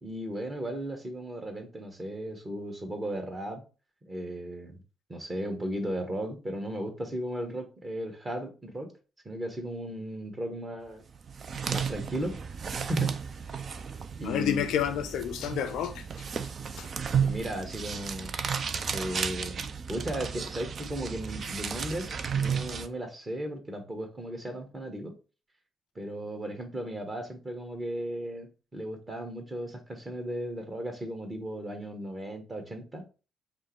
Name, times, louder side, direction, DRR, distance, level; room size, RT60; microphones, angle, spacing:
voice 1, 0.0-3.6 4.0-4.8 5.1-8.9 9.2-11.0 11.7-13.2 14.2-14.7 17.1-18.3 18.9-19.6 19.9-25.1 25.9-33.0, equal, 30° right, 1.5 m, -36 dB
sound 1, 11.1-22.9, right 6 dB, 50° right, 0.4 m, -33 dB
voice 2, 14.2-16.5 16.8-16.9, left 9 dB, 65° left, 0.4 m, -30 dB
5.3 x 2.1 x 4.7 m
figure-of-eight pair, 40°, 0 cm